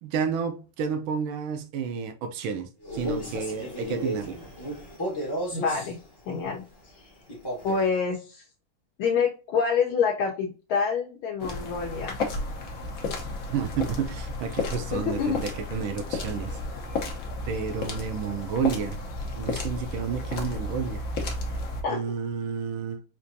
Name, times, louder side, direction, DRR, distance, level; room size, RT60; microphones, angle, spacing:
voice 1, 0.0-4.4 13.5-16.6 17.5-19.0 19.4-21.0 21.9-23.0, right 6 dB, 75° right, 1.4 m, -30 dB
Male speech man speaking, 2.8-5.9 7.3-7.9, equal, 20° left, 0.6 m, -33 dB
voice 2, 5.5-6.0 6.3-6.6 7.0-7.1 7.6-8.4 9.0-12.2 14.9-15.4 21.8-22.0, left 5 dB, 75° left, 1.4 m, -27 dB
sound 1, 11.4-21.8, left 2 dB, 60° left, 0.9 m, -33 dB
4.5 x 2.5 x 2.5 m
omnidirectional pair, 2.4 m